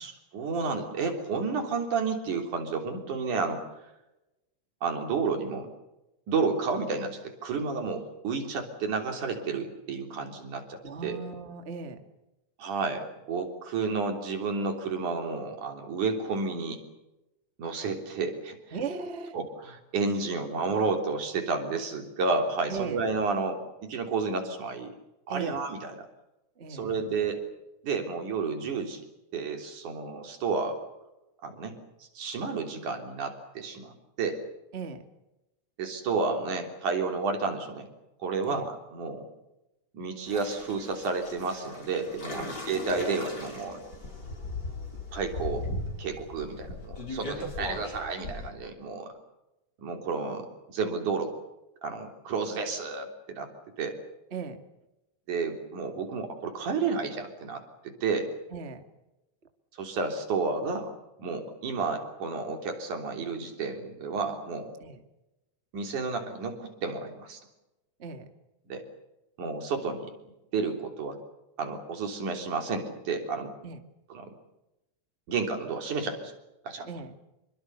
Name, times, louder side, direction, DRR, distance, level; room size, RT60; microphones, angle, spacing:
voice 1, 0.0-3.7 4.8-5.7 6.3-11.2 12.6-16.8 17.6-18.8 19.3-24.9 25.3-26.0 26.7-27.4 27.8-29.0 29.3-30.8 31.4-31.8 32.1-34.4 35.8-37.9 38.2-39.2 39.9-43.8 45.1-45.7 46.0-49.1 49.8-51.3 51.8-53.5 53.8-54.0 55.3-58.3 59.8-60.9 61.2-64.7 65.7-67.4 68.7-68.8 69.4-70.1 70.5-71.2 71.6-73.5 74.1-74.3 75.3-76.3 76.6-76.9, right 4 dB, 75° right, 5 dB, 4.9 m, -31 dB
voice 2, 10.8-12.0 18.7-19.4 22.7-23.0 25.3-25.6 26.6-27.0 34.7-35.0 38.5-38.7 42.4-42.6 54.3-54.6 58.5-58.8 64.8-65.0 68.0-68.2 73.6-73.8 76.8-77.1, right 5 dB, 25° right, 7 dB, 1.9 m, -37 dB
sound 1, 40.3-48.5, left 2 dB, 30° left, 5.9 m, -38 dB
27.0 x 23.5 x 6.8 m, 0.97 s
omnidirectional pair, 3.6 m